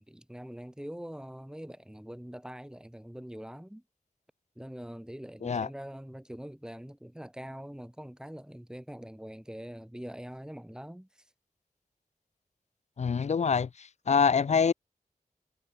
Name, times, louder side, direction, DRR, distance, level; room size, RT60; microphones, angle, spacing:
voice 1, 0.0-3.8 4.6-11.3, equal, 5° right, 3.0 m, -43 dB
voice 2, 13.0-13.7 14.1-14.7, left 6 dB, 50° left, 0.4 m, -25 dB
wide cardioid pair, 95°, 15 cm